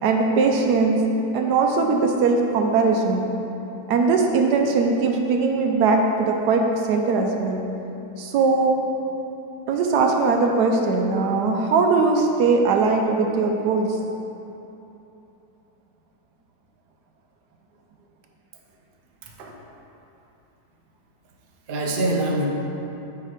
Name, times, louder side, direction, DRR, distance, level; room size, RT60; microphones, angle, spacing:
voice 1, 0.0-1.0 1.3-3.3 3.9-7.6 8.2-8.8 9.7-14.0, right 4 dB, 75° right, 2 dB, 1.1 m, -20 dB
voice 2, 19.2-19.6 21.7-22.5, right 1 dB, 50° right, -1 dB, 0.6 m, -25 dB
8.8 x 3.6 x 4.9 m, 3.0 s
omnidirectional pair, 1.9 m